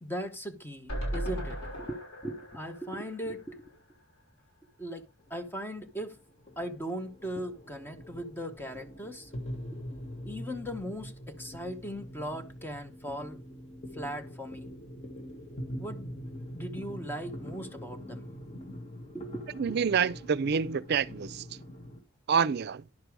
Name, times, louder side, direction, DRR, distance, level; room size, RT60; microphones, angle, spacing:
voice 1, 0.0-3.7 4.8-5.0 5.3-6.2 6.6-9.3 10.2-13.4 13.9-14.7 15.8-16.1 16.5-18.3 19.1-19.4 19.7-19.8, equal, 10° left, 0.9 m, -38 dB
sound 1, 0.9-4.1 4.5-4.6 4.8-4.9, equal, 70° left, 5.9 m, -38 dB
sound 2, 5.2-22.0, equal, 35° left, 1.7 m, -44 dB
voice 2, 19.6-21.4 22.3-22.8, right 6 dB, 55° right, 0.5 m, -27 dB
11.0 x 6.6 x 4.7 m
head